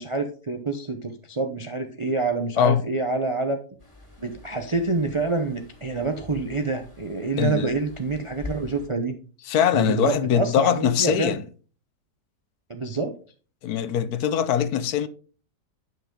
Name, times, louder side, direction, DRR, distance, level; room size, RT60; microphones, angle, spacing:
voice 1, 0.0-3.6 4.2-9.1 9.7-11.4 12.7-13.1, right 3 dB, 40° right, 0.4 m, -27 dB
sound 1, 3.8-8.9, left 1 dB, 15° left, 3.0 m, -44 dB
voice 2, 7.4-7.7 9.5-11.4 13.6-15.1, left 9 dB, 70° left, 1.1 m, -22 dB
10.0 x 6.1 x 3.7 m
omnidirectional pair, 1.8 m